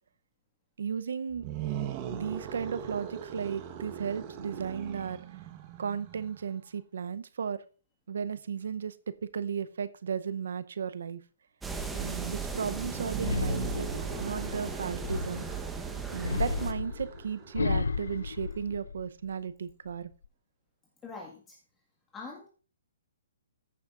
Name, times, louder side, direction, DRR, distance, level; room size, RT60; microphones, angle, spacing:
voice 1, 0.8-1.5 2.1-5.2 5.8-7.6 8.1-8.9 9.2-11.2 11.9-13.9 14.2-15.5 16.1-20.1, right 7 dB, 75° right, 14 dB, 0.7 m, -35 dB
sound 1, 1.3-6.5 12.7-18.4, right 9 dB, 35° right, 1.1 m, -41 dB
sound 2, 11.6-16.7, right 5 dB, 10° right, 1.0 m, -37 dB
sound 3, 13.2-15.6 16.2-19.3 19.7-20.3, left 5 dB, 90° left, 0.5 m, -33 dB
voice 2, 21.0-21.6 22.1-22.5, left 4 dB, 15° left, -1 dB, 1.7 m, -43 dB
14.5 x 7.0 x 2.5 m, 0.38 s
hypercardioid pair, 145°, 0 cm